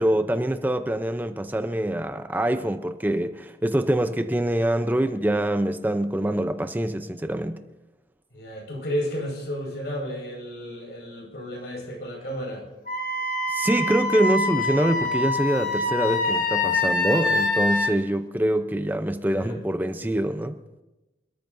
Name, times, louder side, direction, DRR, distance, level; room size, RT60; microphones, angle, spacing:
voice 1, 0.0-7.6 13.5-20.6, right 1 dB, 10° right, 8 dB, 0.6 m, -25 dB
voice 2, 8.3-12.7 19.3-19.6, equal, 75° left, 0 dB, 5.3 m, -32 dB
Wind instrument woodwind instrument, 12.9-17.9, left 2 dB, 50° left, 1.3 m, -25 dB
27.5 x 13.5 x 2.6 m, 1.0 s
head